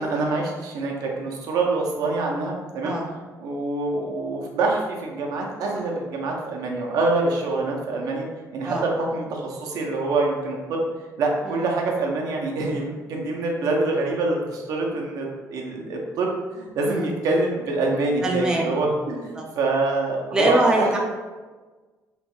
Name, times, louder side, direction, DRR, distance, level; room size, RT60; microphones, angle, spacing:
voice 1, 0.0-3.0 3.4-8.3 8.5-10.8 11.2-21.0, right 2 dB, 70° right, -1 dB, 0.6 m, -25 dB
voice 2, 18.2-18.7 19.3-19.4 20.3-21.0, right 2 dB, 10° right, -1 dB, 0.3 m, -23 dB
3.0 x 2.2 x 3.0 m, 1.3 s
cardioid pair, 145°, 6 cm